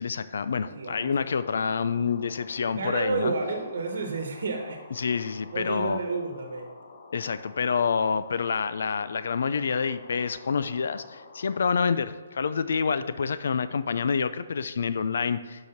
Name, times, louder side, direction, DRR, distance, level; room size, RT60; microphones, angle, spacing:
voice 1, 0.0-3.3 5.0-6.0 7.1-15.7, left 6 dB, 65° left, 13 dB, 0.4 m, -27 dB
voice 2, 0.7-1.1 2.7-5.0 5.5-6.7, right 3 dB, 65° right, 3 dB, 1.2 m, -30 dB
sound 1, 0.8-11.9, left 4 dB, 50° left, 0.9 m, -49 dB
6.8 x 4.9 x 5.9 m, 1.5 s
hypercardioid pair, 170°, 0 cm